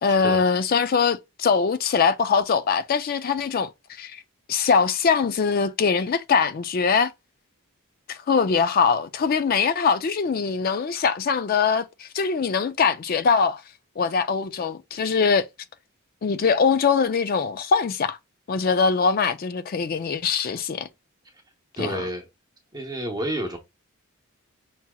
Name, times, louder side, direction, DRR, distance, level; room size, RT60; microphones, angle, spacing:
voice 1, 0.0-4.2 4.5-7.1 8.1-13.6 14.0-15.4 16.2-18.2 18.5-20.9 21.8-22.0, left 5 dB, 40° left, 0.3 m, -22 dB
voice 2, 21.8-22.3 22.7-23.6, right 1 dB, 20° right, 0.8 m, -29 dB
5.8 x 2.8 x 2.2 m
head